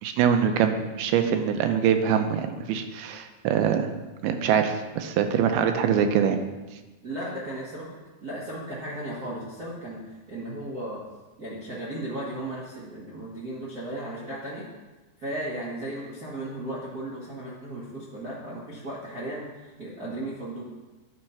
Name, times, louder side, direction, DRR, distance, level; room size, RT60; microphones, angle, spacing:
voice 1, 0.0-3.9 4.2-6.4, right 8 dB, 85° right, 7 dB, 2.6 m, -24 dB
voice 2, 7.0-11.0 11.4-14.7 15.2-20.6, right 1 dB, 60° right, -7 dB, 0.9 m, -35 dB
11.0 x 4.3 x 5.7 m, 1.2 s
omnidirectional pair, 4.3 m